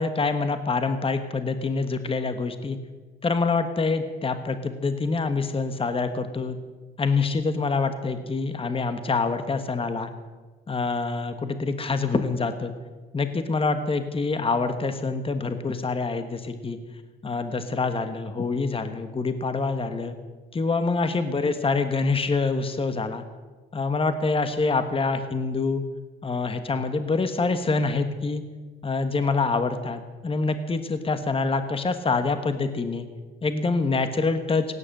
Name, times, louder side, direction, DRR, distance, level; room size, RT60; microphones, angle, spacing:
voice 1, 0.0-2.8 3.2-6.6 7.0-10.1 10.7-12.7 13.1-16.8 17.2-20.1 20.5-23.2 23.7-25.8 26.2-28.4 28.8-33.1 33.4-34.7, left 4 dB, 30° left, 9 dB, 1.2 m, -26 dB
17.0 x 9.7 x 7.7 m, 1.3 s
cardioid pair, 90°, 20 cm